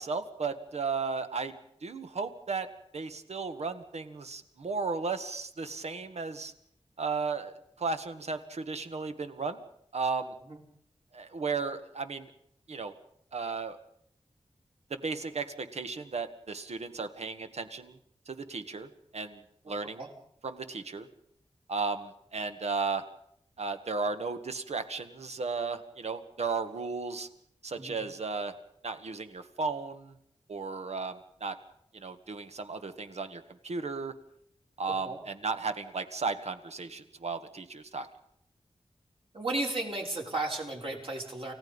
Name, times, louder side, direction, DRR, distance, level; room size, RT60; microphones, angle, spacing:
voice 1, 0.0-1.5 1.8-2.7 2.9-6.5 7.0-9.6 9.9-10.3 11.1-12.3 12.7-12.9 13.3-13.8 14.9-18.0 18.3-20.0 20.4-21.1 21.7-23.0 23.6-27.3 27.6-28.5 28.8-30.1 30.5-31.6 31.9-34.1 34.8-38.1, right 4 dB, 75° right, 9 dB, 1.8 m, -35 dB
voice 2, 39.3-41.5, right 2 dB, 55° right, 0 dB, 6.0 m, -34 dB
29.0 x 17.0 x 5.5 m, 0.70 s
wide cardioid pair, 75°, 11 cm